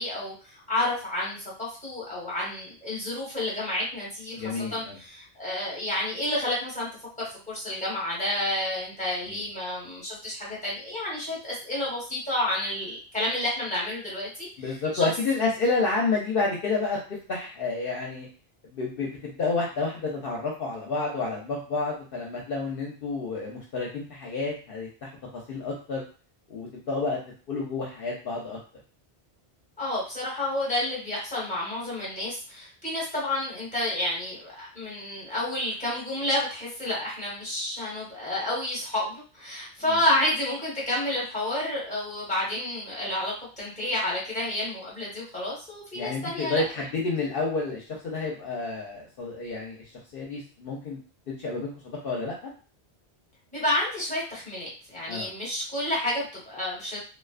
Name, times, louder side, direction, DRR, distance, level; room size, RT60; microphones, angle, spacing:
voice 1, 0.0-4.4 4.7-6.9 7.2-15.1 29.8-46.6 53.5-57.0, left 1 dB, 5° left, -6 dB, 1.1 m, -30 dB
voice 2, 4.3-5.0 9.3-9.4 14.6-17.0 17.3-18.3 18.6-25.1 25.5-26.0 26.5-27.2 27.5-28.6 45.9-49.8 50.1-51.0 51.3-52.5 55.1-55.3, left 3 dB, 65° left, -2 dB, 0.7 m, -30 dB
2.4 x 2.3 x 2.4 m, 0.37 s
omnidirectional pair, 1.1 m